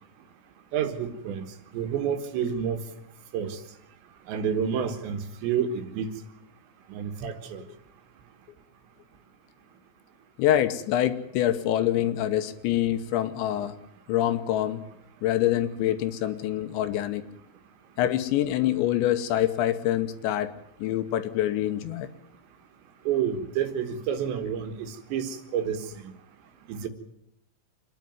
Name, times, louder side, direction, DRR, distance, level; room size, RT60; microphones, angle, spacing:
voice 1, 0.7-1.5 1.7-2.8 3.3-3.6 4.3-6.1 6.9-7.6 23.1-25.8 26.7-26.9, right 8 dB, 75° right, 7 dB, 3.6 m, -29 dB
voice 2, 10.4-13.8 14.1-14.8 15.2-17.3 18.0-20.5 20.8-22.1, left 12 dB, 80° left, 10 dB, 3.2 m, -25 dB
26.5 x 10.5 x 9.3 m, 0.81 s
omnidirectional pair, 5.5 m